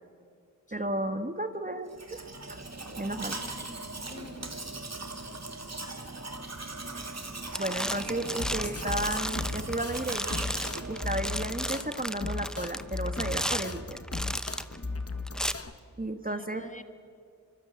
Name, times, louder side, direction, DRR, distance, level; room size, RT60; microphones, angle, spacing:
voice 1, 0.7-2.2 2.5-2.6 3.0-3.3 7.6-10.4 10.9-14.0 16.0-16.6, right 1 dB, 25° right, 8 dB, 1.5 m, -33 dB
Domestic sounds home sounds, 1.9-12.0, right 2 dB, 50° right, 2.5 m, -40 dB
voice 2, 3.2-4.9 5.3-5.6 7.9-8.2 14.8-15.1 16.3-16.8, left 2 dB, 20° left, 8 dB, 2.0 m, -50 dB
sound 1, 7.0-7.3 7.5-14.8 15.3-15.5, equal, ahead, 1.1 m, -35 dB
sound 2, 8.3-15.7, left 3 dB, 45° left, 1.7 m, -36 dB
25.5 x 23.5 x 8.5 m, 2.3 s
wide cardioid pair, 50°, 33 cm